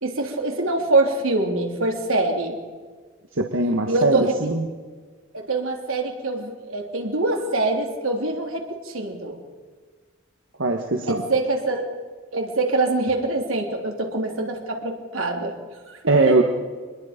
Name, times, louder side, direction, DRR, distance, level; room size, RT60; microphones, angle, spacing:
voice 1, 0.0-2.6 3.9-4.3 5.3-9.4 11.1-11.9 12.3-15.5 15.9-16.0 16.3-16.4, right 2 dB, 85° right, 2 dB, 3.2 m, -24 dB
voice 2, 3.4-4.7 10.6-11.2 16.1-16.4, right 3 dB, 70° right, 3 dB, 1.5 m, -20 dB
25.0 x 21.0 x 5.2 m, 1.5 s
head